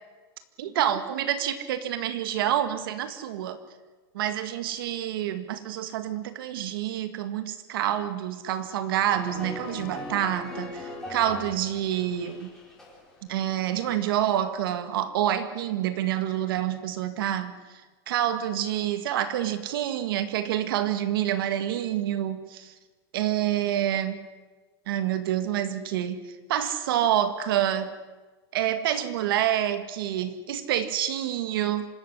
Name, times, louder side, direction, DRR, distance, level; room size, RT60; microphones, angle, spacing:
voice 1, 0.6-3.6 4.1-12.5 13.3-17.8 18.1-22.7 23.1-24.2 24.9-26.2 26.5-27.9 28.5-31.9, right 11 dB, 65° right, 11 dB, 1.8 m, -27 dB
sound 1, 9.1-13.5 13.8-14.2, left 2 dB, 5° left, 4.7 m, -39 dB
25.5 x 13.5 x 9.9 m, 1.3 s
supercardioid pair, 170°, 13 cm